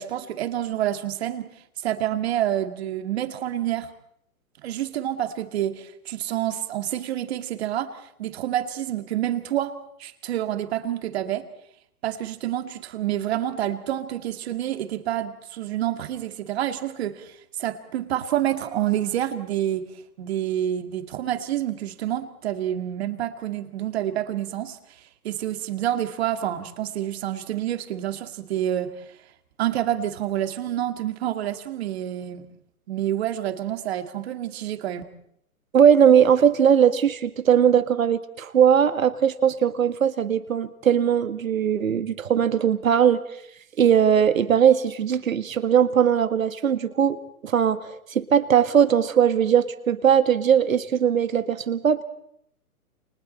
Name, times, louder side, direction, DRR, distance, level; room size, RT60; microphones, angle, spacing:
voice 1, 0.0-1.5 1.8-3.9 4.6-9.7 10.0-11.5 12.0-19.9 20.2-24.8 25.2-29.0 29.6-32.4 32.9-35.0, right 12 dB, 45° right, 9 dB, 2.3 m, -28 dB
voice 2, 35.7-43.2 43.8-52.0, right 8 dB, 65° right, 11 dB, 1.8 m, -19 dB
29.5 x 29.0 x 4.3 m, 0.71 s
figure-of-eight pair, 120°, 44 cm